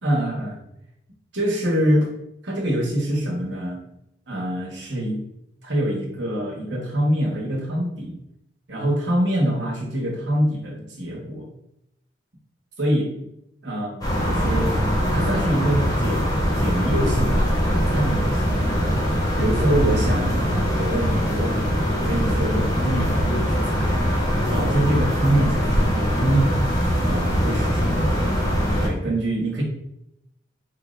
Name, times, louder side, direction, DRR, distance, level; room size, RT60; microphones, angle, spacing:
voice 1, 0.0-0.6 1.3-2.1 2.4-3.8 4.3-5.2 5.6-8.1 8.7-11.5 12.8-13.1 13.6-14.8 15.1-16.3 16.6-24.1 24.5-28.1 28.8-29.6, right 1 dB, 70° right, -2 dB, 1.3 m, -25 dB
sound 1, 14.0-28.9, equal, 20° left, 1.0 m, -22 dB
4.6 x 2.6 x 3.2 m, 0.82 s
head